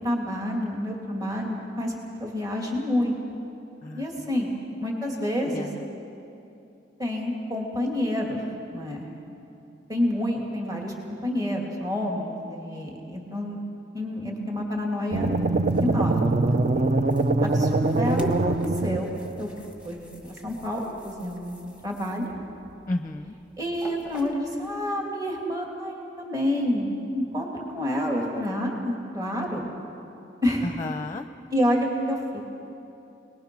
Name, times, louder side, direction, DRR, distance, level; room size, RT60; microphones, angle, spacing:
voice 1, 0.0-1.9 2.2-3.1 4.0-4.5 4.8-5.7 7.0-8.4 8.7-9.1 9.9-13.6 13.9-15.3 15.8-16.4 17.4-18.5 18.8-19.5 19.8-22.3 23.6-29.7 30.4-30.7 31.5-32.4, left 1 dB, 20° right, -1 dB, 2.4 m, -28 dB
voice 2, 3.8-4.3 5.4-5.8 16.2-16.3 16.7-17.2 22.9-23.4 30.6-31.3, left 2 dB, 25° left, 8 dB, 0.7 m, -33 dB
sound 1, 15.1-19.4, right 2 dB, 40° right, 0.6 m, -23 dB
sound 2, 15.3-24.9, equal, 5° right, 1.6 m, -43 dB
26.0 x 20.0 x 6.1 m, 2.7 s
head